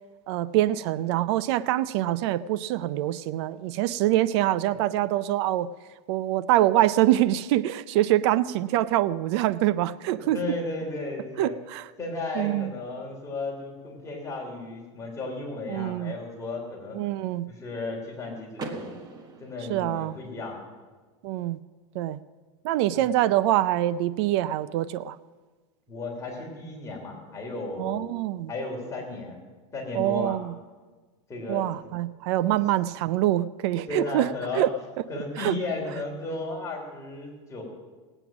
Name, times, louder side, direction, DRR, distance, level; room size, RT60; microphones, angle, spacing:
voice 1, 0.3-5.7 6.1-10.4 11.4-11.9 12.4-12.7 15.7-16.1 16.9-17.5 19.7-20.1 21.2-21.6 21.9-22.2 22.6-25.2 27.8-28.5 29.9-30.5 31.5-34.3 34.5-34.7 35.4-35.5, right 14 dB, 60° right, 17 dB, 0.5 m, -25 dB
voice 2, 10.1-11.6 12.0-17.0 17.5-18.9 19.4-20.7 22.9-23.1 25.9-28.1 28.5-29.4 29.7-30.4 31.3-31.7 32.4-32.6 33.9-34.6 35.1-37.6, left 2 dB, 20° left, -1 dB, 3.3 m, -34 dB
Car / Door, 18.5-20.5, right 4 dB, 25° right, 1.4 m, -41 dB
18.5 x 9.0 x 6.0 m, 1.4 s
supercardioid pair, 145°, 16 cm